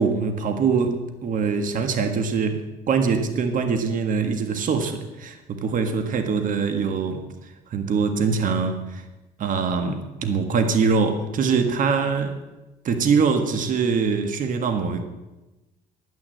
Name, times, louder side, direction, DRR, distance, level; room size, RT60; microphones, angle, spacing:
voice 1, 0.0-7.2 7.7-9.0 9.4-12.4 12.8-15.1, right 5 dB, 50° right, 7 dB, 1.6 m, -23 dB
11.0 x 9.7 x 7.8 m, 1.0 s
cardioid pair, 110°, 17 cm